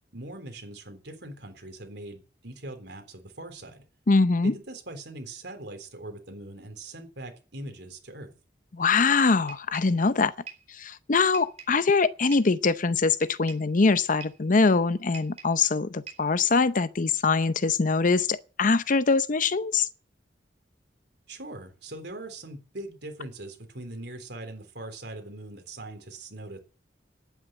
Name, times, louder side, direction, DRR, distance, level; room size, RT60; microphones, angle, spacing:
voice 1, 0.0-3.8 4.4-8.3 21.3-26.6, right 1 dB, 70° right, 3.6 m, -41 dB
voice 2, 4.1-4.5 8.7-10.3 10.8-19.9, left 4 dB, 50° left, 0.7 m, -23 dB
sound 1, 9.5-10.0 10.5-10.7 11.3-11.8 12.3-12.6 13.2-13.7 14.2-14.5 15.1-15.6 16.1-16.4, right 6 dB, 40° right, 4.5 m, -45 dB
10.5 x 9.4 x 8.9 m
head